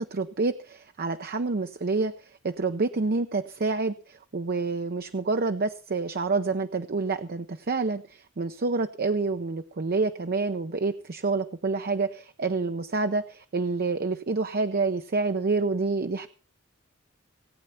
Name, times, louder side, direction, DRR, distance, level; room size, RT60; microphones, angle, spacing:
voice 1, 0.0-16.3, right 3 dB, 45° right, 8 dB, 0.6 m, -28 dB
18.5 x 8.9 x 5.7 m, 0.40 s
head